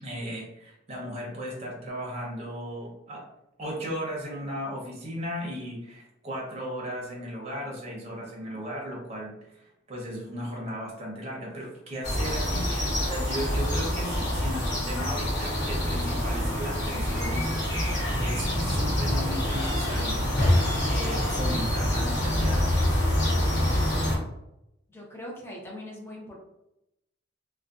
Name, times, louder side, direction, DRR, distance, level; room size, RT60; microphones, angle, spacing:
voice 1, 0.0-3.3 3.6-12.7 13.1-17.9 18.2-20.3 20.8-23.0, equal, 35° right, -2 dB, 0.7 m, -36 dB
sound 1, 12.0-24.2, left 1 dB, 65° left, 0.9 m, -26 dB
voice 2, 24.9-26.4, left 1 dB, 15° left, -2 dB, 0.6 m, -41 dB
2.4 x 2.2 x 2.3 m, 0.86 s
head